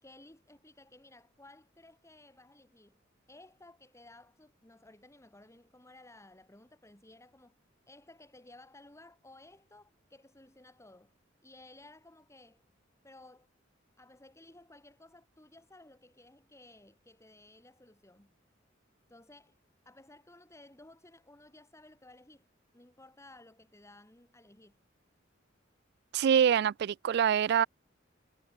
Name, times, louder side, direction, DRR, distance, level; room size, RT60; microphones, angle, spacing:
voice 1, 0.0-3.0 3.3-7.5 7.9-11.1 11.4-12.6 13.0-13.5 14.0-18.3 19.1-19.6 19.9-22.4 22.7-24.8, left 2 dB, 15° left, 2.3 m, -56 dB
voice 2, 26.1-27.7, right 8 dB, 55° right, 0.3 m, -25 dB
head